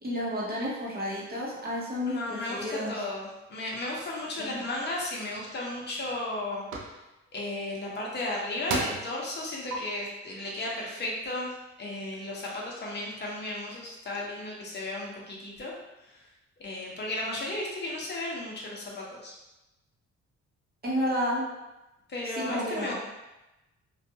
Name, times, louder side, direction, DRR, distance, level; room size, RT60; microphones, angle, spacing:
voice 1, 0.0-2.9 4.4-4.6 20.8-21.4 22.4-22.9, equal, 30° right, -6 dB, 0.8 m, -31 dB
voice 2, 2.1-6.6 7.3-11.5 11.8-15.7 16.6-19.3 22.1-22.9, left 2 dB, 35° left, -3 dB, 0.8 m, -34 dB
sound 1, 5.3-5.4 6.0-6.3 6.7-6.9 8.1-8.2 8.7-9.1 9.7-9.8, right 3 dB, 90° right, 0.5 m, -32 dB
2.5 x 2.2 x 2.7 m, 0.99 s
cardioid pair, 90°, 30 cm